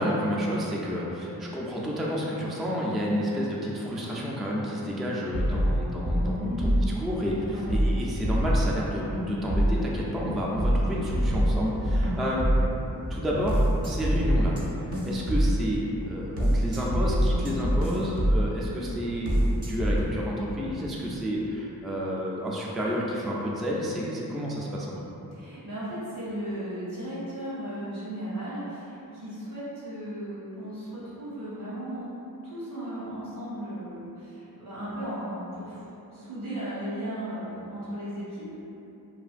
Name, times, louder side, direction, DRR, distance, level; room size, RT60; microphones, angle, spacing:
voice 1, 0.0-12.8 13.1-14.6 15.0-19.4 19.7-25.0, equal, ahead, -4 dB, 0.3 m, -30 dB
sound 1, 5.3-7.0 7.3-8.7 9.1-9.8 10.2-14.6 14.9-15.6 16.0-18.5 18.9-20.0, equal, 40° right, 0.6 m, -25 dB
voice 2, 6.4-6.8 7.4-7.7 25.3-32.1 32.4-35.8 36.1-38.5, equal, 85° right, -12 dB, 1.4 m, -36 dB
2.9 x 2.5 x 2.4 m, 3.0 s
wide cardioid pair, 45°, 38 cm